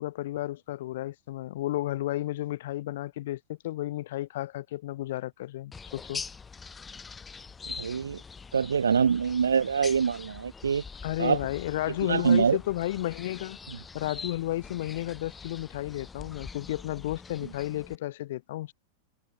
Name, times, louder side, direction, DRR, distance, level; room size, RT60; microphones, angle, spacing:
voice 1, 0.0-6.2 11.0-13.6 13.9-18.7, left 15 dB, 55° left, 1.5 m, -32 dB
sound 1, 5.7-18.0, left 5 dB, 15° left, 6.9 m, -44 dB
voice 2, 7.8-8.2 8.5-10.8 11.2-11.4 12.1-12.6, right 6 dB, 70° right, 0.6 m, -24 dB
figure-of-eight pair, 90°, 0 cm